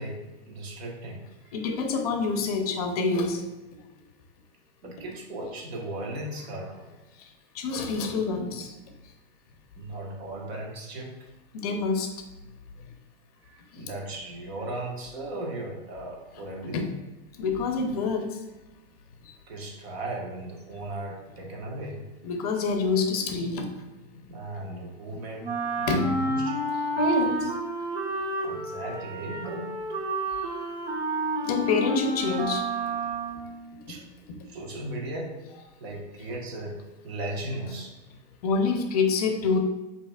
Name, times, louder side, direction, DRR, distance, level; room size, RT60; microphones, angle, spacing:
voice 1, 0.0-1.7 4.8-7.0 9.8-11.1 13.4-16.9 19.5-22.1 24.3-26.6 28.4-29.7 33.4-33.5 33.9-34.0 34.4-35.5 35.8-37.9, right 1 dB, 65° right, -1 dB, 1.5 m, -37 dB
voice 2, 1.5-3.5 7.5-8.7 11.5-12.1 13.7-13.9 16.7-16.9 17.4-18.4 19.3-19.4 22.2-23.7 25.9-26.1 27.0-27.5 31.4-32.7 34.3-34.4 38.4-39.6, left 4 dB, 35° left, 5 dB, 0.5 m, -26 dB
Wind instrument woodwind instrument, 25.4-33.6, right 2 dB, 90° right, 1.5 m, -30 dB
7.7 x 2.9 x 2.3 m, 1.1 s
supercardioid pair, 170°, 34 cm